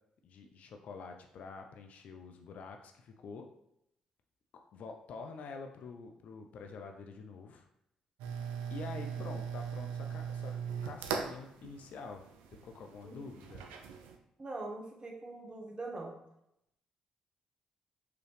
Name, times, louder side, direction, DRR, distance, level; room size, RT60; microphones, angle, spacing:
voice 1, 0.2-3.5 4.5-7.7 8.7-10.6 10.8-12.3 12.5-13.6, left 4 dB, 65° left, 4 dB, 0.5 m, -47 dB
sound 1, 8.2-14.2, right 7 dB, 85° right, 0.4 m, -40 dB
voice 2, 14.4-16.2, right 2 dB, 35° right, 0 dB, 1.3 m, -42 dB
4.8 x 3.1 x 3.3 m, 0.79 s
hypercardioid pair, 50°, 3 cm